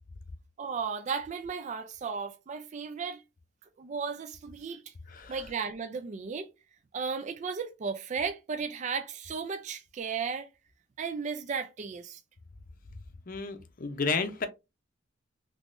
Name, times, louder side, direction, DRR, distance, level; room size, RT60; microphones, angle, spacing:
voice 1, 0.6-3.2 3.8-4.9 5.3-6.5 6.9-10.5 11.0-12.2, right 5 dB, 35° right, 0.3 m, -35 dB
voice 2, 13.3-14.5, left 4 dB, 45° left, 0.6 m, -32 dB
3.5 x 3.0 x 2.5 m
head